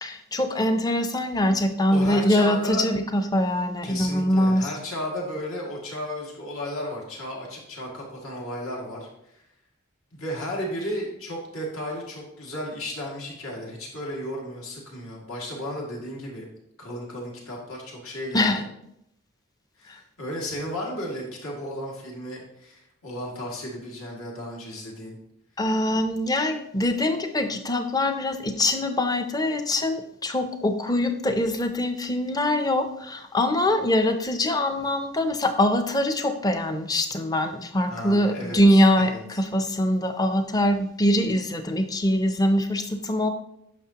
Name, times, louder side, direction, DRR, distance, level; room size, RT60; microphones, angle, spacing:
voice 1, 0.0-4.7 18.3-18.6 19.9-20.0 25.6-39.1 39.4-43.3, left 1 dB, 15° left, 8 dB, 0.5 m, -23 dB
voice 2, 1.9-2.9 3.8-9.4 10.1-16.5 16.8-18.6 19.8-25.2 37.9-39.2, left 1 dB, 75° left, -2 dB, 2.1 m, -34 dB
9.3 x 6.1 x 2.9 m, 0.78 s
head